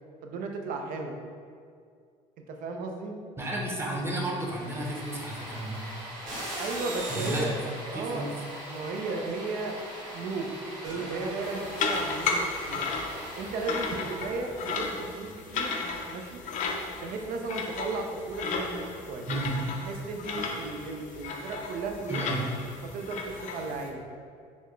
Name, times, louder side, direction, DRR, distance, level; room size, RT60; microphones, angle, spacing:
voice 1, 0.2-1.2 2.5-3.2 6.6-7.6 7.9-8.4 8.7-9.8 10.1-10.5 10.8-12.9 13.4-15.7 16.1-16.4 17.0-19.3 19.8-22.2 22.8-24.0, right 3 dB, 65° right, 3 dB, 0.5 m, -35 dB
voice 2, 3.4-5.9 7.1-7.6 7.9-8.3 19.3-19.5 22.1-22.4, right 1 dB, 15° right, -2 dB, 0.8 m, -32 dB
sound 1, 4.3-14.5, right 1 dB, 85° right, 1.5 m, -39 dB
sound 2, 11.4-23.9, left 4 dB, 55° left, 0.5 m, -34 dB
4.2 x 2.2 x 3.1 m, 2.2 s
supercardioid pair, 90°, 15 cm